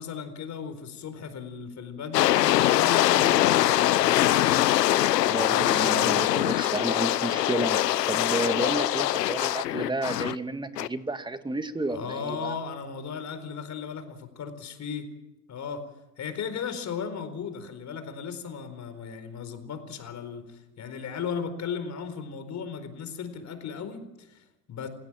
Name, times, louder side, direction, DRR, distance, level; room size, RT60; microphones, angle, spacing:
voice 1, 0.0-4.7 5.3-6.1 11.9-15.1 15.5-15.8 16.2-24.9, left 6 dB, 35° left, 10 dB, 4.4 m, -36 dB
sound 1, 2.1-10.3 10.8-10.9, left 14 dB, 85° left, 0.9 m, -23 dB
voice 2, 5.2-12.6, right 2 dB, 10° right, 9 dB, 1.8 m, -31 dB
28.0 x 16.5 x 7.5 m, 0.96 s
hypercardioid pair, 95°, 47 cm